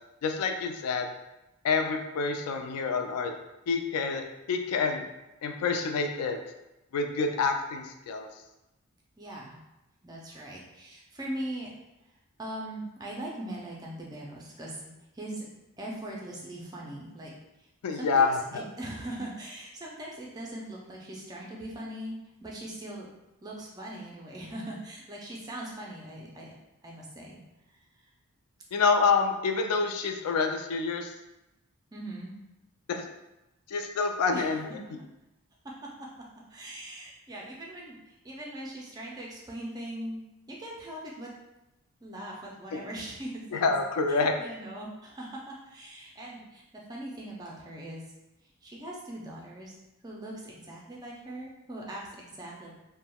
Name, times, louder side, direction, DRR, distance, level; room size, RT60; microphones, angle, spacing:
voice 1, 0.2-1.1 1.6-3.3 3.7-5.0 5.4-6.4 6.9-8.3 17.8-18.6 28.7-31.1 32.9-33.0 33.7-34.8 42.7-42.8 43.5-44.3, left 4 dB, 90° left, 5 dB, 0.3 m, -27 dB
voice 2, 9.2-9.6 10.0-11.7 12.4-15.4 15.8-17.3 17.9-22.1 22.4-23.1 23.4-26.5 26.8-27.4 31.9-32.3 34.3-34.6 36.5-40.2 40.6-41.3 42.0-43.6 44.1-46.6 46.9-48.0 48.6-49.7 50.0-52.7, right 1 dB, 15° right, -3 dB, 0.4 m, -40 dB
3.4 x 2.1 x 2.2 m, 0.94 s
head